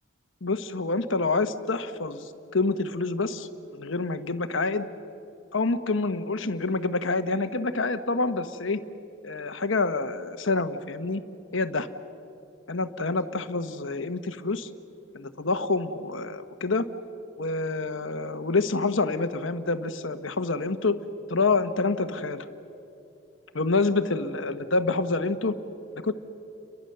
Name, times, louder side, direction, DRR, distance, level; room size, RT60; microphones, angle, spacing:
voice 1, 0.4-4.9 5.5-8.8 9.2-11.2 11.5-11.9 12.7-14.7 15.1-16.8 17.4-21.0 21.3-22.5 23.5-25.6 25.9-26.1, left 3 dB, 70° left, 10 dB, 1.1 m, -27 dB
30.0 x 22.5 x 6.8 m, 2.8 s
head